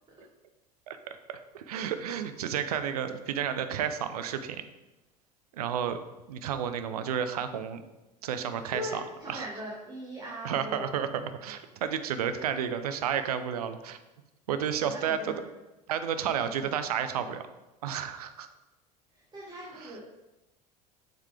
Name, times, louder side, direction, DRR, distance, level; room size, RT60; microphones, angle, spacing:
voice 1, 0.9-4.6 5.5-6.0 6.3-7.8 8.2-8.8 9.3-9.4 10.4-14.0 14.5-15.2 15.9-17.4 17.8-18.5, right 8 dB, 65° right, 10 dB, 0.5 m, -31 dB
voice 2, 8.5-11.0 14.8-15.4 16.4-16.8 19.1-20.0, equal, 20° right, -4 dB, 1.3 m, -41 dB
7.1 x 3.8 x 3.4 m, 1.0 s
figure-of-eight pair, 70°, 21 cm